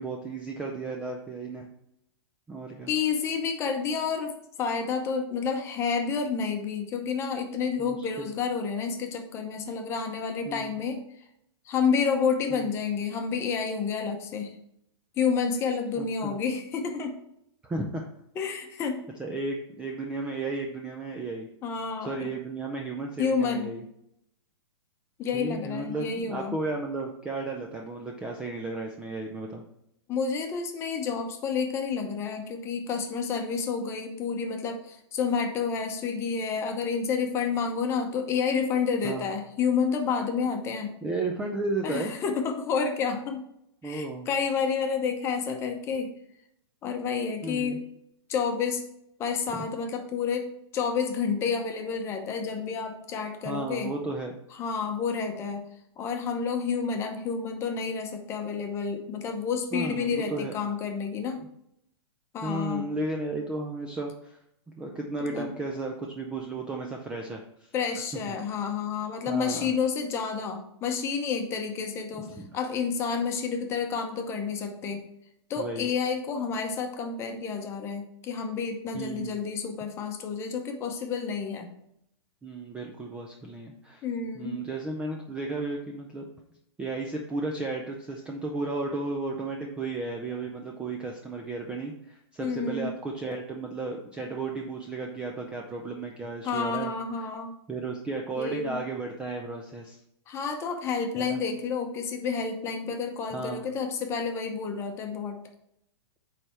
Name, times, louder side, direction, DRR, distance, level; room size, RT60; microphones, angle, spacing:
voice 1, 0.0-1.7 2.5-2.9 7.8-8.3 10.5-10.8 12.5-12.7 15.9-16.4 17.6-18.0 19.2-21.5 22.0-23.8 25.3-29.6 39.0-39.3 41.0-42.1 43.8-44.3 47.4-47.8 53.4-54.4 59.7-60.6 62.4-64.4 64.7-67.7 68.3-68.4 69.3-69.7 72.4-72.5 75.6-75.9 78.9-79.4 82.4-84.0 84.4-86.2 86.8-96.9 97.2-97.3 97.7-100.0 101.2-101.4 103.3-103.6, right 3 dB, 5° right, 1 dB, 0.4 m, -34 dB
voice 2, 2.9-11.3 11.6-14.5 15.2-17.2 18.3-19.0 21.6-22.3 23.2-23.8 25.2-26.6 30.1-40.9 41.8-43.4 43.8-46.1 46.8-47.8 48.3-48.8 49.2-53.9 54.5-55.7 56.0-61.4 62.3-62.9 65.3-65.5 67.7-75.0 75.5-81.7 84.0-84.6 92.4-92.9 96.4-97.5 98.4-98.8 100.3-105.4, left 5 dB, 20° left, 4 dB, 0.8 m, -30 dB
8.8 x 3.4 x 4.3 m, 0.77 s
hypercardioid pair, 155°, 14 cm